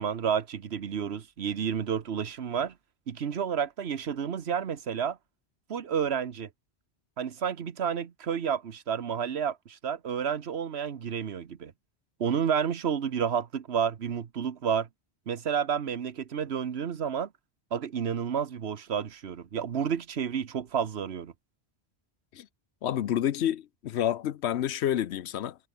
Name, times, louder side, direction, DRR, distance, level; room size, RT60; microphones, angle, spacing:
voice 1, 0.0-2.7 3.1-5.2 5.7-6.5 7.2-11.7 12.2-14.9 15.3-17.3 17.7-21.3, right 7 dB, 75° right, 1.3 m, -30 dB
voice 2, 22.8-25.6, left 11 dB, 85° left, 1.0 m, -29 dB
omnidirectional pair, 1.1 m